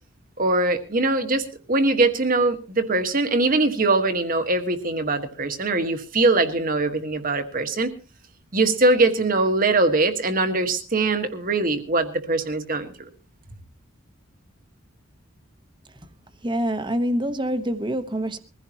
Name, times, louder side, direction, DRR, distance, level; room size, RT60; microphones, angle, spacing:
voice 1, 0.4-7.9 8.5-13.1, right 2 dB, 40° right, 1.5 m, -22 dB
voice 2, 16.4-18.4, equal, 20° right, 1.1 m, -25 dB
22.5 x 15.5 x 2.9 m
head